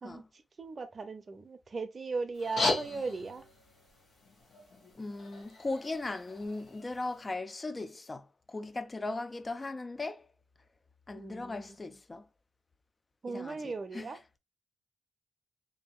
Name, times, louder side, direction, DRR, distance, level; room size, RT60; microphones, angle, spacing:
voice 1, 0.0-3.4 11.1-11.8 13.2-14.2, right 4 dB, 50° right, 0.5 m, -38 dB
sound 1, 2.3-7.3, left 2 dB, 80° left, 1.2 m, -37 dB
voice 2, 5.0-10.2 11.1-12.2 13.3-14.1, left 2 dB, 35° left, 0.4 m, -38 dB
2.7 x 2.6 x 2.3 m
supercardioid pair, 40°, 0 cm